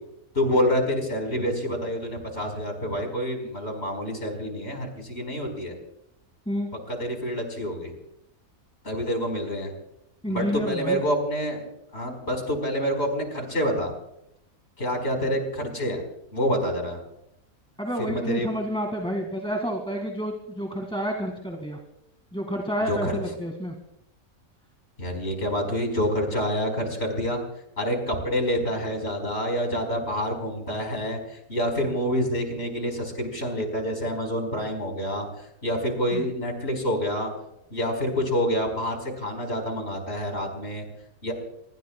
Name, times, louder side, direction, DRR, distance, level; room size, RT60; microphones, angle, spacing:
voice 1, 0.3-5.7 6.9-7.9 8.8-9.7 10.3-11.6 11.9-13.9 14.8-16.0 16.3-17.0 18.0-18.5 22.9-23.2 25.0-27.4 27.8-31.2 31.5-35.2 35.6-37.3 37.7-40.8 41.2-41.3, equal, 45° left, 3 dB, 5.0 m, -27 dB
voice 2, 10.2-11.0 17.8-21.8 22.3-23.7 36.1-36.3, equal, 5° left, 2 dB, 2.0 m, -29 dB
25.5 x 23.5 x 2.3 m, 0.81 s
omnidirectional pair, 1.5 m